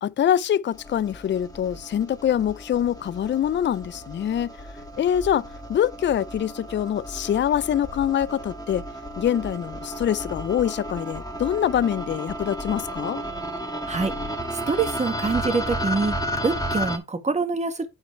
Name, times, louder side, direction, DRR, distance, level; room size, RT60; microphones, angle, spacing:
voice 1, 0.0-4.5 5.0-8.8 9.2-13.2, left 10 dB, 40° left, 0.5 m, -24 dB
sound 1, 0.7-17.0, equal, 10° left, 1.8 m, -33 dB
voice 2, 14.5-16.2 16.4-17.9, right 4 dB, 20° right, 1.7 m, -25 dB
9.6 x 4.3 x 4.5 m
cardioid pair, 90°, 30 cm